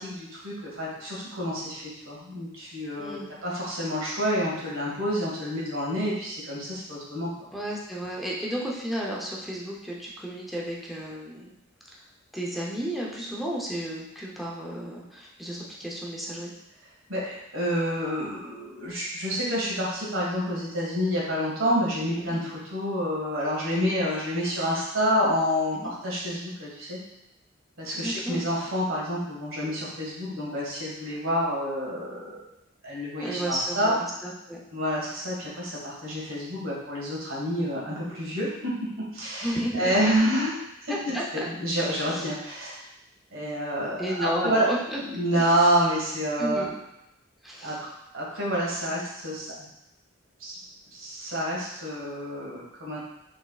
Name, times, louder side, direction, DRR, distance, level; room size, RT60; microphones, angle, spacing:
voice 1, 0.0-7.3 17.1-27.0 27.8-32.4 32.8-33.9 34.7-38.8 39.1-42.8 43.3-44.7 45.0-46.7 47.6-47.9 48.1-49.7 50.4-50.6 50.9-53.0, equal, 85° right, -5 dB, 1.7 m, -28 dB
voice 2, 3.0-3.3 7.5-11.5 12.3-16.5 22.2-22.4 25.7-25.9 27.9-28.5 33.2-34.6 39.4-40.3 40.9-41.5 42.1-42.3 44.0-45.0 46.4-46.8 47.4-47.8, equal, ahead, -4 dB, 0.7 m, -33 dB
6.3 x 3.5 x 2.4 m, 0.86 s
head